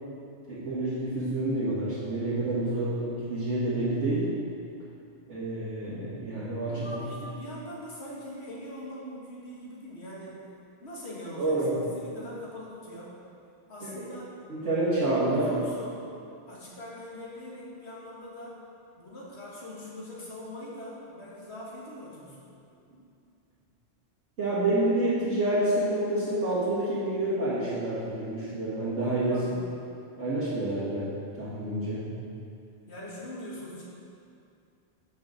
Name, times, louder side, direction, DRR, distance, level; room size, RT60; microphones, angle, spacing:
voice 1, 0.5-4.3 5.3-7.0 11.4-11.7 13.8-13.9 14.5-15.6 24.4-29.4 30.2-31.1 31.4-32.1, right 1 dB, 75° right, -13 dB, 2.0 m, -28 dB
voice 2, 6.7-10.4 10.8-13.1 13.7-14.3 15.1-16.1 16.5-18.6 19.0-22.5 29.3-29.7 32.9-33.8, left 1 dB, 65° left, -5 dB, 1.9 m, -42 dB
6.3 x 5.7 x 6.5 m, 2.5 s
omnidirectional pair, 1.2 m